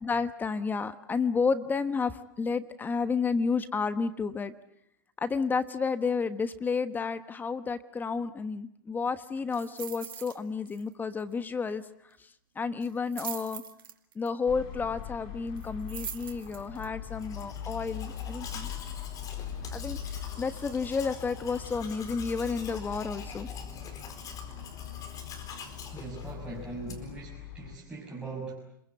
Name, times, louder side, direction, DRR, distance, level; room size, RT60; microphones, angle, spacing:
voice 1, 0.0-4.5 5.2-11.8 12.6-13.6 14.1-18.7 19.7-23.5, left 5 dB, 15° left, 12 dB, 1.2 m, -31 dB
Keys Foley, 9.5-10.4 10.7-10.9 11.2-11.3 12.8-14.3 15.6-16.9 17.4-17.5, right 8 dB, 85° right, 2.2 m, -41 dB
sound 1, 14.5-27.8, left 9 dB, 50° left, 3.1 m, -41 dB
Domestic sounds home sounds, 17.1-27.2, left 5 dB, 30° left, 4.5 m, -45 dB
voice 2, 25.9-28.5, right 3 dB, 10° right, -4 dB, 6.0 m, -40 dB
29.5 x 22.0 x 8.1 m, 0.76 s
hypercardioid pair, 110°, 11 cm